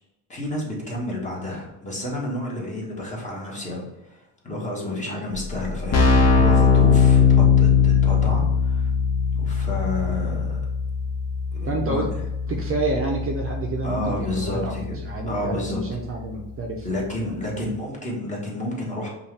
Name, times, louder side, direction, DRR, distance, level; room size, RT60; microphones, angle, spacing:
voice 1, 0.3-8.9 9.4-10.6 11.5-12.0 13.8-15.0 15.3-15.8 16.8-19.1, left 1 dB, 20° left, -3 dB, 1.5 m, -30 dB
Keyboard (musical), 5.3-5.4 5.6-16.2, left 6 dB, 45° left, 0.9 m, -21 dB
voice 2, 11.7-12.1 12.5-17.7, right 3 dB, 35° right, 1 dB, 0.6 m, -29 dB
5.4 x 2.5 x 3.4 m, 0.96 s
cardioid pair, 120°, 37 cm